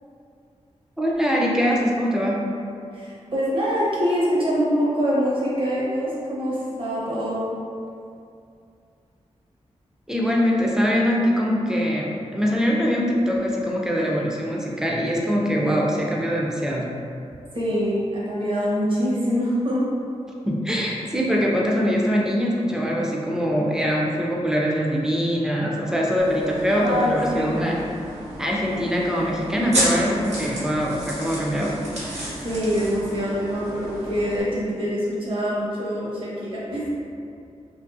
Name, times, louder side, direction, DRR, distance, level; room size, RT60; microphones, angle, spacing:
voice 1, 1.0-2.4 10.1-16.9 20.3-27.8 28.4-31.8, equal, 5° right, -3 dB, 0.4 m, -23 dB
voice 2, 2.9-7.4 17.5-19.8 26.7-27.6 32.4-36.9, equal, 50° right, -7 dB, 0.7 m, -24 dB
sound 1, 26.2-34.4, right 1 dB, 70° right, 1.0 m, -32 dB
2.5 x 2.5 x 2.4 m, 2.4 s
wide cardioid pair, 110°, 12 cm